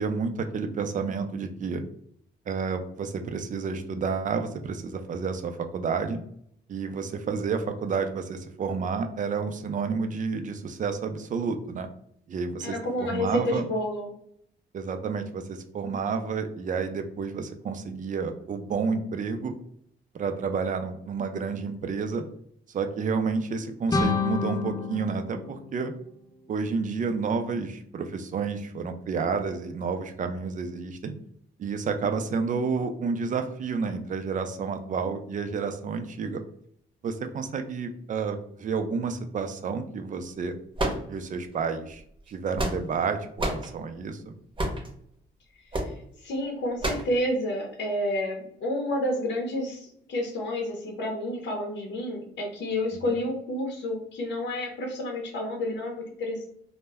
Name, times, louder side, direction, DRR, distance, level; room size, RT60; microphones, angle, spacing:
voice 1, 0.0-1.8 2.5-6.2 6.7-11.9 12.3-13.7 14.7-19.5 20.1-22.2 22.7-25.9 26.5-31.1 31.6-36.4 37.0-40.5 41.1-42.0 42.3-44.3 53.1-53.2, right 5 dB, 40° right, 6 dB, 0.4 m, -30 dB
voice 2, 12.6-14.1 45.7-56.5, left 1 dB, 65° left, 0 dB, 0.7 m, -30 dB
sound 1, 23.9-26.7, left 4 dB, 20° left, 0.4 m, -29 dB
sound 2, 40.8-41.5 42.3-43.0 43.4-43.7 44.6-44.9 45.7-46.0 46.8-47.1, right 1 dB, 25° right, 0.8 m, -29 dB
2.1 x 2.1 x 3.4 m, 0.67 s
cardioid pair, 90°, 20 cm